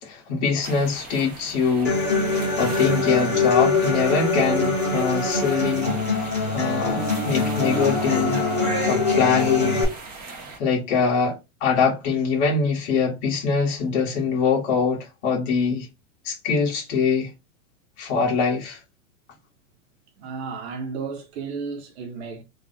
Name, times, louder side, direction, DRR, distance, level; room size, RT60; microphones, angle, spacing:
voice 1, 0.0-2.0 2.6-6.0 6.5-8.4 8.9-9.8 10.6-15.9 16.2-17.3 18.0-18.8, left 5 dB, 45° left, 1.7 m, -23 dB
sound 1, 0.6-10.6, right 3 dB, 20° right, 1.1 m, -40 dB
Human voice / Acoustic guitar, 1.8-9.8, left 3 dB, 10° left, 0.3 m, -23 dB
voice 2, 20.2-22.4, right 5 dB, 50° right, 1.2 m, -33 dB
3.3 x 2.4 x 4.0 m
supercardioid pair, 170°, 42 cm